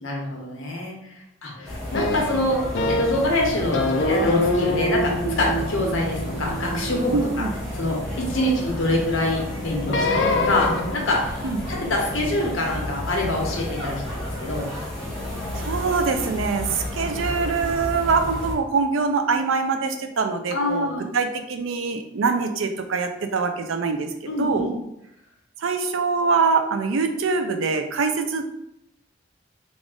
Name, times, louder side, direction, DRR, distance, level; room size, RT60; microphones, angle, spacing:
voice 1, 0.0-2.6 2.9-7.2 7.7-11.3 11.7-14.7 20.5-21.1 24.3-24.7, left 1 dB, 80° left, -1 dB, 1.0 m, -25 dB
sound 1, 1.6-18.5, left 1 dB, 5° left, 0.8 m, -32 dB
sound 2, 1.9-3.3 3.7-8.0 9.8-11.2, left 1 dB, 65° left, 0.4 m, -25 dB
voice 2, 7.1-7.5 11.4-11.6 15.6-24.1 24.4-24.7 25.6-28.4, right 4 dB, 85° right, 6 dB, 0.5 m, -24 dB
3.5 x 2.4 x 3.7 m, 0.83 s
head